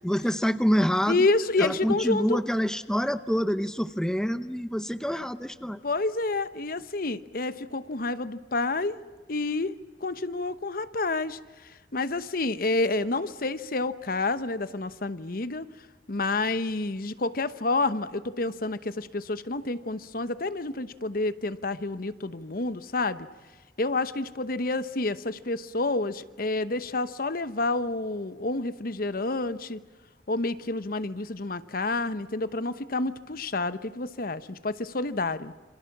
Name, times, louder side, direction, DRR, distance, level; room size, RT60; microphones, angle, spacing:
voice 1, 0.0-1.3 1.6-5.8, equal, 5° left, 11 dB, 0.8 m, -26 dB
voice 2, 1.1-2.4 5.8-9.0 9.3-11.4 11.9-15.7 16.1-23.3 23.8-29.8 30.3-35.5, left 2 dB, 55° left, 13 dB, 1.0 m, -29 dB
28.0 x 27.0 x 7.3 m, 1.3 s
head